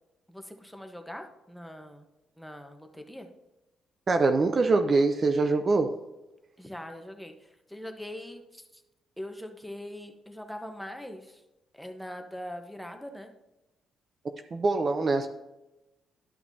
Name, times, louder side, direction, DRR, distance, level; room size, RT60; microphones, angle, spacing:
voice 1, 0.3-2.1 2.4-3.3 6.6-8.8 9.2-11.4 11.7-13.3, left 1 dB, ahead, 4 dB, 1.0 m, -42 dB
voice 2, 4.1-6.0 14.5-15.3, right 3 dB, 40° right, 7 dB, 0.5 m, -24 dB
12.0 x 5.8 x 2.7 m, 1.0 s
cardioid pair, 90°, 0 cm